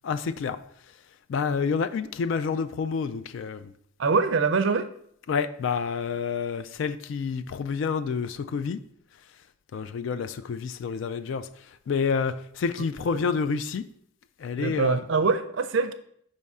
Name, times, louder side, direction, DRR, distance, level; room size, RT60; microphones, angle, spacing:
voice 1, 0.0-0.6 1.3-3.6 5.3-8.8 9.7-11.5 11.9-13.8 14.4-15.0, left 5 dB, 60° left, 0.3 m, -28 dB
voice 2, 4.0-4.9 13.1-13.2 14.5-15.9, right 4 dB, 60° right, 0.4 m, -24 dB
5.3 x 3.5 x 5.4 m
head